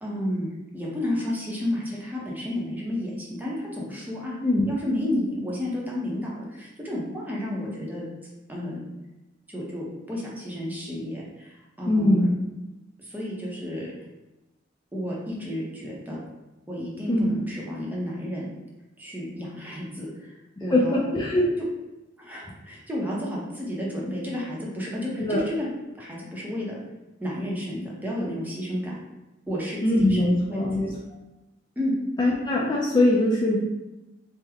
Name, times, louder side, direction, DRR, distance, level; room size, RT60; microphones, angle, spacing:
voice 1, 0.0-4.3 4.7-8.0 8.5-8.8 9.5-12.3 13.0-13.9 14.9-16.2 16.7-18.5 19.0-20.3 20.6-21.0 22.2-25.7 25.9-26.8 27.2-29.0 29.5-30.7 31.8-31.9, left 1 dB, 10° right, -5 dB, 0.7 m, -31 dB
voice 2, 11.9-12.3 17.1-17.3 20.7-21.5 25.2-25.4 29.8-30.9 32.2-33.6, left 1 dB, 25° left, -4 dB, 0.4 m, -21 dB
3.5 x 2.1 x 3.3 m, 1.0 s
head